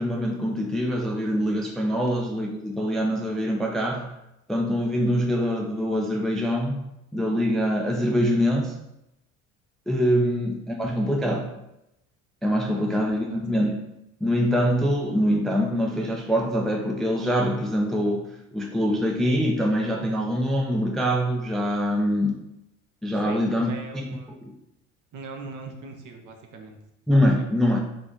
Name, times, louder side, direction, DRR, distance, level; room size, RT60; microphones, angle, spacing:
voice 1, 0.0-4.1 4.5-6.8 7.1-8.8 9.9-11.5 12.4-13.8 14.2-22.4 23.0-24.1 24.4-24.5 27.1-27.8, equal, ahead, 1 dB, 0.5 m, -24 dB
voice 2, 23.2-24.3 25.1-26.8 27.4-27.5, right 3 dB, 45° right, 3 dB, 0.8 m, -41 dB
3.9 x 2.5 x 3.7 m, 0.87 s
hypercardioid pair, 60°, 42 cm